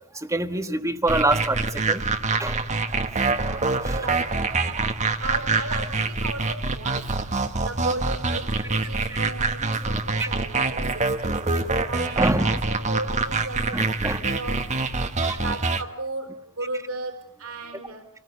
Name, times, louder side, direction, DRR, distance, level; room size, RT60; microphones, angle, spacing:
voice 1, 0.3-2.0 2.4-2.8 3.4-4.0 4.3-4.5 4.7-4.9 9.1-9.2 10.2-10.3 12.2-12.6 13.7-14.2 15.3-15.4, right 2 dB, 15° right, 8 dB, 1.4 m, -26 dB
sound 1, 1.1-15.8, right 3 dB, 30° right, 1.3 m, -25 dB
voice 2, 4.0-4.9 5.2-7.2 7.6-14.0 14.2-14.8 15.4-18.1, right 2 dB, 75° right, 5 dB, 3.7 m, -36 dB
27.5 x 18.5 x 8.2 m, 0.72 s
head